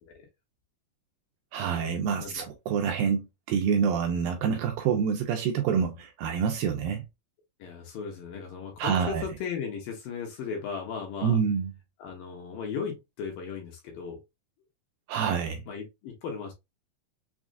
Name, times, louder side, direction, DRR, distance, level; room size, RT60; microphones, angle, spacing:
voice 1, 1.5-7.0 8.8-9.2 11.2-11.7 15.1-15.6, right 7 dB, 80° right, 2.1 m, -27 dB
voice 2, 2.1-2.4 7.6-11.4 12.0-14.2 15.7-16.5, left 6 dB, 70° left, 2.4 m, -36 dB
6.3 x 2.4 x 2.4 m
omnidirectional pair, 4.6 m